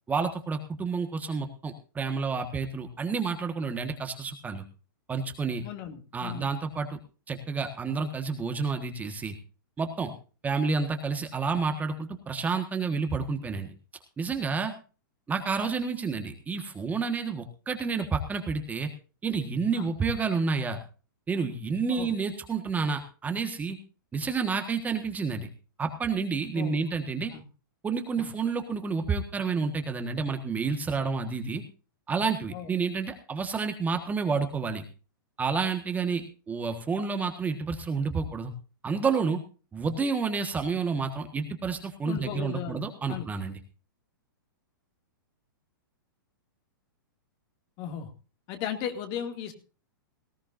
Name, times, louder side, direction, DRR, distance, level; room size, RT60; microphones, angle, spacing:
voice 1, 0.1-4.6 5.1-5.6 6.1-7.0 7.3-9.4 9.8-10.1 10.4-13.7 14.2-14.7 15.3-18.9 19.2-20.8 21.3-23.8 24.1-25.5 25.8-27.3 27.8-31.6 32.1-34.8 35.4-38.5 38.8-39.4 39.7-43.6, right 5 dB, 15° right, 6 dB, 1.5 m, -29 dB
voice 2, 5.6-6.5 19.7-19.9 21.9-22.1 26.5-26.8 27.3-27.4 28.2-28.3 32.5-32.7 38.2-38.3 42.0-43.3 47.8-48.1 48.5-49.5, left 9 dB, 40° left, 6 dB, 2.3 m, -36 dB
18.5 x 15.0 x 2.6 m, 0.35 s
hypercardioid pair, 135°, 12 cm